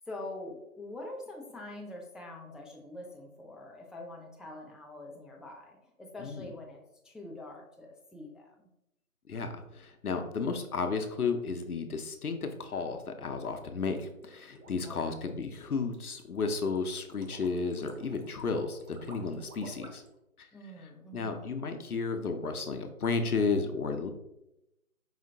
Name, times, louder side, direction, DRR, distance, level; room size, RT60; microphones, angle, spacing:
voice 1, 0.1-8.7 14.8-15.0 20.5-21.5, left 2 dB, ahead, -1 dB, 0.4 m, -45 dB
voice 2, 9.3-20.0 20.4-20.5 21.1-24.1, left 4 dB, 85° left, 7 dB, 0.8 m, -33 dB
sound 1, 14.1-20.1, right 2 dB, 85° right, 1.1 m, -51 dB
4.9 x 3.0 x 2.7 m, 0.87 s
figure-of-eight pair, 175°, 43 cm